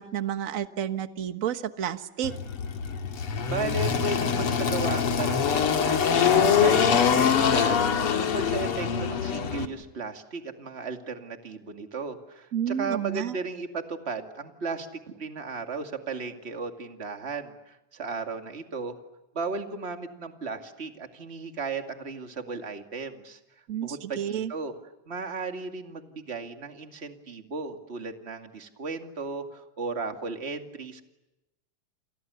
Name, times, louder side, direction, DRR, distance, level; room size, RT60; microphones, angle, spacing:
voice 1, 0.0-2.3 12.5-13.3 23.7-24.5, right 9 dB, 50° right, 10 dB, 0.9 m, -30 dB
Engine, 2.2-9.7, left 7 dB, 50° left, 2.5 m, -24 dB
voice 2, 3.5-18.9 19.3-23.4 23.8-24.7 25.1-31.0, right 4 dB, 20° right, 5 dB, 2.3 m, -35 dB
29.5 x 28.5 x 7.0 m, 0.95 s
omnidirectional pair, 3.5 m